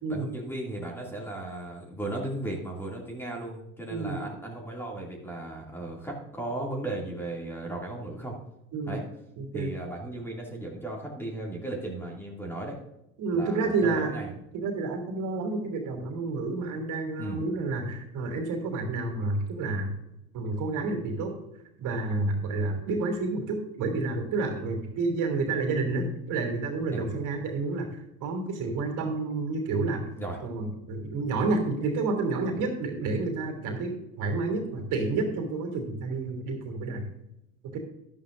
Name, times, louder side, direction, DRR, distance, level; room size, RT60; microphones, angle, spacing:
voice 1, 0.1-8.4 8.9-9.0 9.5-12.8 13.3-14.3 17.2-17.4 24.5-24.6 26.9-27.2 30.2-30.4, right 2 dB, 5° left, -1 dB, 2.4 m, -36 dB
voice 2, 3.9-4.2 8.7-9.0 9.4-9.7 13.2-14.1 14.5-19.9 20.3-21.3 21.8-27.9 28.2-30.1 30.4-37.1 37.6-37.8, right 3 dB, 45° right, 4 dB, 2.9 m, -29 dB
13.0 x 11.5 x 2.5 m, 0.86 s
hypercardioid pair, 85°, 42 cm